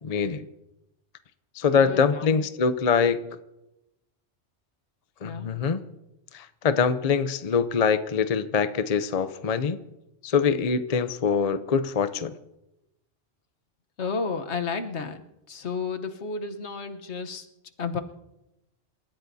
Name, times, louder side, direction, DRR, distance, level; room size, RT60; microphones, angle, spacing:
voice 1, 0.0-0.5 1.5-3.3 5.2-5.8 6.3-9.8 10.2-12.3, left 6 dB, 40° left, 11 dB, 0.6 m, -24 dB
voice 2, 1.8-2.4 5.2-5.5 14.0-15.2 15.5-17.5 17.8-18.0, left 5 dB, 65° left, 7 dB, 1.3 m, -32 dB
28.0 x 14.5 x 2.7 m, 0.92 s
omnidirectional pair, 1.2 m